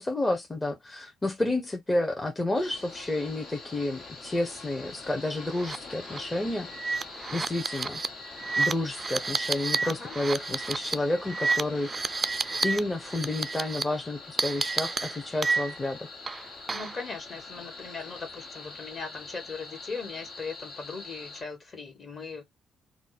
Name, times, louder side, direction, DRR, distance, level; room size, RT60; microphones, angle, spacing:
voice 1, 0.0-6.7 7.3-8.0 8.6-12.1 12.6-16.1, left 2 dB, 20° left, 0.7 m, -30 dB
sound 1, 2.5-21.4, left 3 dB, 70° left, 1.3 m, -44 dB
sound 2, 5.5-5.8 6.1-6.2 6.7-12.8 13.1-13.8 14.4-15.9 16.3-17.0, right 4 dB, 30° right, 0.3 m, -30 dB
voice 2, 9.8-10.1 16.7-22.4, left 4 dB, 45° left, 1.4 m, -39 dB
2.6 x 2.1 x 3.9 m
cardioid pair, 90°, 0 cm